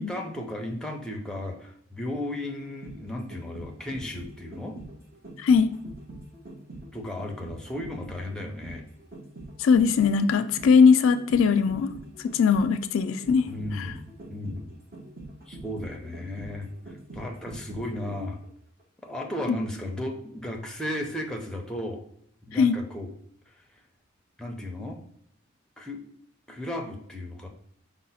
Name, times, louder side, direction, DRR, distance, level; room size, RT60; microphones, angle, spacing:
voice 1, 0.0-4.8 6.9-8.8 13.5-14.7 15.5-16.7 17.1-18.4 19.0-22.0 22.5-23.1 24.4-25.0 25.8-26.0 26.5-27.5, left 1 dB, 5° left, 1 dB, 0.5 m, -35 dB
sound 1, 2.6-18.5 18.8-18.9, right 2 dB, 50° right, 0.8 m, -44 dB
voice 2, 5.4-5.7 9.6-11.9 12.2-13.5 13.8-13.9 19.5-19.6 22.6-22.8, left 5 dB, 75° left, 10 dB, 0.3 m, -20 dB
4.8 x 2.1 x 4.0 m, 0.72 s
head